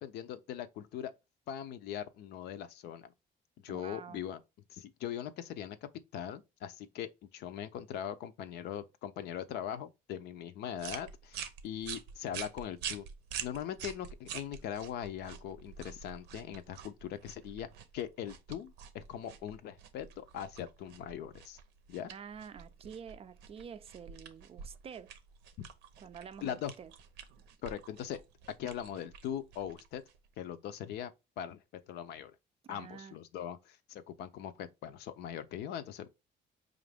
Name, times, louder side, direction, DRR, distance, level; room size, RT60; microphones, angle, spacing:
voice 1, 0.0-1.1 1.5-3.1 3.6-4.4 4.7-5.8 6.1-13.1 13.4-21.6 21.9-22.1 26.4-26.7 27.6-28.2 28.6-30.0 30.4-31.6 31.9-32.3 32.7-36.1, left 10 dB, 75° left, 0.6 m, -41 dB
voice 2, 3.7-4.2 22.1-25.1 26.0-26.9 32.6-33.2, right 7 dB, 35° right, 0.3 m, -48 dB
sound 1, 10.8-30.3, right 8 dB, 85° right, 0.6 m, -47 dB
4.9 x 2.5 x 3.3 m
cardioid pair, 110°, 17 cm